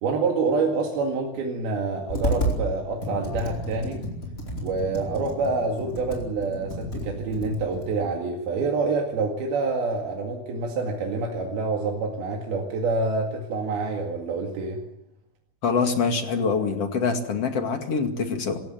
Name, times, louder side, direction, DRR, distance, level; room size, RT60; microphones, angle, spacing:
voice 1, 0.0-4.0 4.6-14.8, right 3 dB, 85° right, 1 dB, 4.0 m, -27 dB
Computer keyboard, 2.1-2.6 3.0-7.9, equal, 20° left, 4.8 m, -31 dB
voice 2, 15.6-18.6, left 5 dB, 45° left, 5 dB, 3.0 m, -25 dB
26.5 x 15.5 x 9.0 m, 0.84 s
omnidirectional pair, 4.3 m